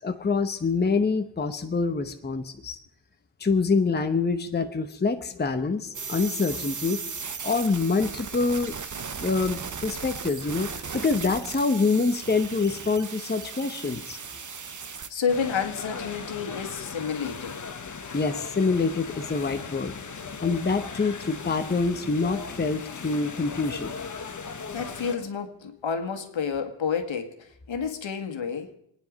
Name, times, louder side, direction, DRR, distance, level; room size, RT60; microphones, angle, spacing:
voice 1, 0.0-2.8 3.4-7.0 7.4-8.8 9.2-14.2 18.1-19.9 20.4-23.9, left 4 dB, 20° left, 0.9 m, -26 dB
sound 1, 5.9-15.1, right 5 dB, 40° right, 1.0 m, -36 dB
voice 2, 15.1-17.7 24.7-28.8, left 6 dB, 70° left, 1.9 m, -30 dB
sound 2, 15.3-25.2, left 5 dB, 40° left, 1.3 m, -38 dB
27.0 x 9.7 x 5.2 m
wide cardioid pair, 145°, 47 cm